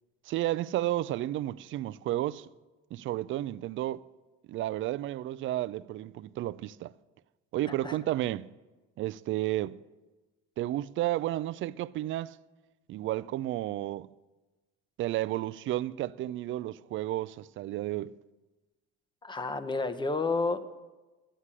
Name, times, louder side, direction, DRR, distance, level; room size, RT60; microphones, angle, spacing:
voice 1, 0.3-2.5 2.9-4.0 4.5-6.9 7.5-8.5 9.0-9.8 10.6-12.4 12.9-14.1 15.0-18.1, right 14 dB, 40° right, 0.4 m, -32 dB
voice 2, 19.2-20.7, left 3 dB, 15° left, 0.8 m, -30 dB
11.0 x 8.2 x 7.5 m
cardioid pair, 115°, 30 cm